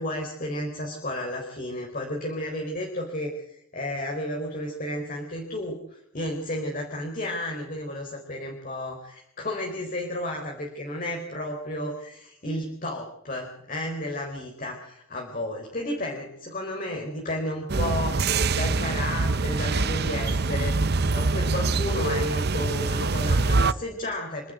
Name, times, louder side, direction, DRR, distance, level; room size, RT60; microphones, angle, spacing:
voice 1, 0.0-24.5, left 1 dB, 40° left, 1 dB, 4.3 m, -32 dB
sound 1, 17.7-23.7, right 3 dB, 50° right, 0.8 m, -24 dB
28.0 x 12.0 x 8.2 m, 0.80 s
head